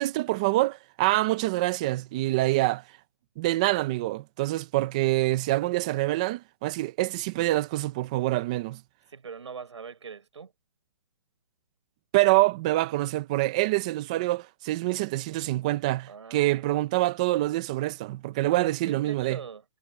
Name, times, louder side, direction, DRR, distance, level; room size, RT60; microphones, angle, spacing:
voice 1, 0.0-2.8 3.4-8.8 12.1-19.4, right 18 dB, 15° right, 0.4 m, -26 dB
voice 2, 9.1-10.5 16.1-16.7 18.5-19.6, right 6 dB, 85° right, 6.0 m, -42 dB
hypercardioid pair, 170°, 15 cm